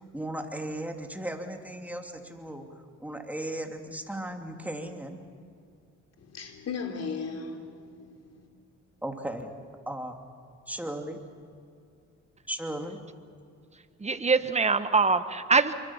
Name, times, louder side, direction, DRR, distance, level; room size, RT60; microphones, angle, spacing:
voice 1, 0.0-2.7 3.0-5.2 9.0-9.5 9.9-10.2 10.7-11.2 12.5-13.0, right 1 dB, 5° right, 4 dB, 2.8 m, -36 dB
voice 2, 6.2-8.5, left 5 dB, 55° left, 3 dB, 3.9 m, -37 dB
voice 3, 14.0-15.7, right 4 dB, 20° right, 10 dB, 1.4 m, -23 dB
27.0 x 24.5 x 7.4 m, 2.4 s
cardioid pair, 90°, 30 cm